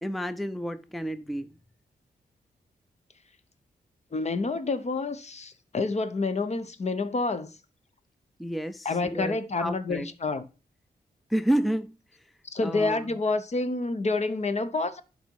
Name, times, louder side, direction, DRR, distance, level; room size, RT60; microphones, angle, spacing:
voice 1, 0.0-1.5 8.4-10.1 11.3-12.3 12.6-13.2, right 1 dB, ahead, 0.5 m, -30 dB
voice 2, 4.1-7.5 8.8-10.5 12.5-15.0, left 3 dB, 40° left, 0.9 m, -28 dB
11.0 x 4.2 x 4.7 m
cardioid pair, 85°, 17 cm